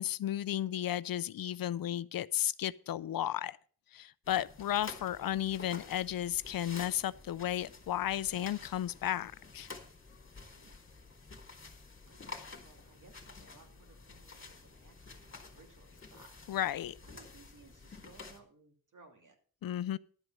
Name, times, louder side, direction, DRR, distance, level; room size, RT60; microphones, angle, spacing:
voice 1, 0.0-3.6 3.9-9.7 16.5-16.9 19.6-20.0, left 11 dB, 70° left, 0.5 m, -34 dB
sound 1, 4.2-18.4, left 4 dB, 35° left, 2.4 m, -51 dB
voice 2, 10.5-10.9 12.0-16.4 16.7-19.4, right 3 dB, 55° right, 2.7 m, -61 dB
12.0 x 8.0 x 5.4 m
wide cardioid pair, 115°, 36 cm